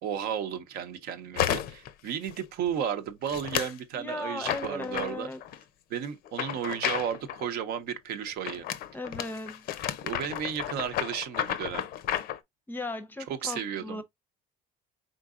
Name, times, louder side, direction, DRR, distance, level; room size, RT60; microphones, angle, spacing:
voice 1, 0.0-5.3 5.9-8.7 10.0-11.8 13.3-14.0, right 8 dB, 70° right, 0.8 m, -33 dB
sound 1, 1.4-1.9 2.3-2.7 3.3-3.8 4.4-5.6 6.3-7.5 8.5-12.4, left 11 dB, 65° left, 0.5 m, -32 dB
voice 2, 4.0-5.4 8.9-9.6 12.7-14.0, left 2 dB, 10° left, 0.6 m, -36 dB
4.6 x 3.8 x 2.4 m
cardioid pair, 130°, 17 cm